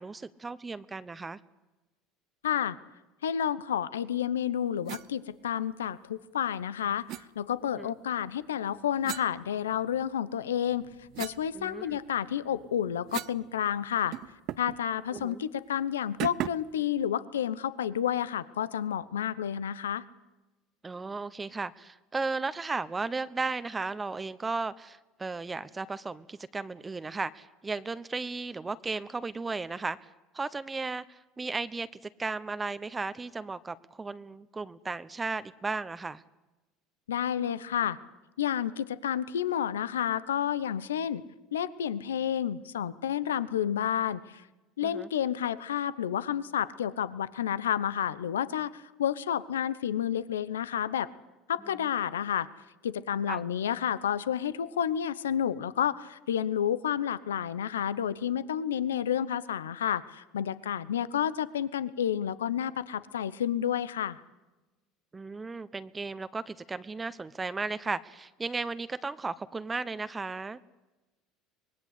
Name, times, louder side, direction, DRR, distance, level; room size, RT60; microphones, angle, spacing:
voice 1, 0.0-1.4 7.7-7.9 11.5-12.0 15.1-15.4 20.8-30.1 30.3-36.2 44.8-45.1 53.3-53.4 65.1-70.6, right 3 dB, 20° right, 14 dB, 1.0 m, -35 dB
voice 2, 2.4-2.8 3.2-10.9 11.2-14.2 14.6-20.0 37.1-38.0 38.4-41.2 41.5-44.4 44.8-51.1 51.5-52.5 52.8-64.2, left 9 dB, 90° left, 16 dB, 0.9 m, -30 dB
sound 1, 4.8-5.1 7.1-7.3 9.0-10.1 10.5-13.4 13.7-13.8 14.1-14.8 15.1-15.3 16.2-16.7, right 14 dB, 60° right, 0.8 m, -39 dB
24.5 x 20.5 x 8.3 m, 1.1 s
hypercardioid pair, 80°, 0 cm